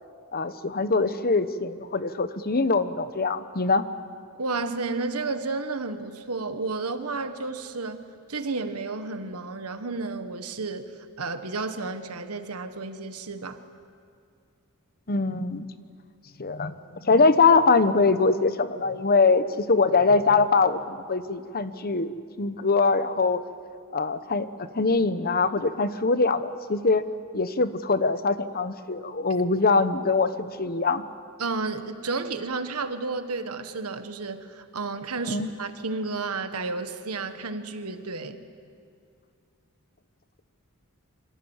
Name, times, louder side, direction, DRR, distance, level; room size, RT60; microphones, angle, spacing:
voice 1, 0.3-3.9 15.1-15.7 16.4-16.8 17.0-23.4 23.9-24.5 24.7-27.0 27.3-31.0 35.3-35.5, left 4 dB, 45° left, 12 dB, 1.1 m, -23 dB
voice 2, 4.4-10.9 11.2-13.6 31.4-38.4, right 3 dB, 85° right, 8 dB, 1.6 m, -32 dB
27.5 x 25.0 x 7.4 m, 2.3 s
head